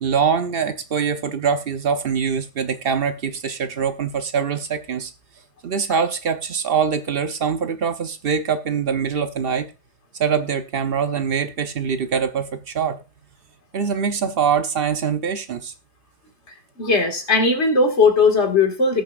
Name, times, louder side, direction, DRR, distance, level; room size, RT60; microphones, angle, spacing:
voice 1, 0.0-5.1 5.6-9.7 10.2-13.0 13.7-15.7, right 6 dB, 55° right, 0.9 m, -23 dB
voice 2, 16.8-19.0, left 4 dB, 60° left, 2.3 m, -18 dB
19.0 x 6.5 x 2.4 m
omnidirectional pair, 1.3 m